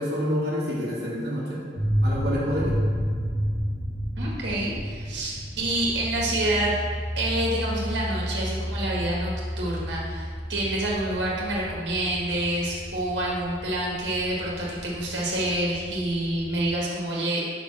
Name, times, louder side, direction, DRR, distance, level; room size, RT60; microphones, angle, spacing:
voice 1, 0.0-1.6 2.0-2.8, equal, 60° right, -7 dB, 1.4 m, -27 dB
sound 1, 1.7-16.8, equal, 65° left, 1.9 m, -31 dB
voice 2, 4.2-6.7 7.2-17.4, right 1 dB, 90° right, -4 dB, 1.6 m, -27 dB
5.3 x 4.8 x 6.0 m, 2.1 s
head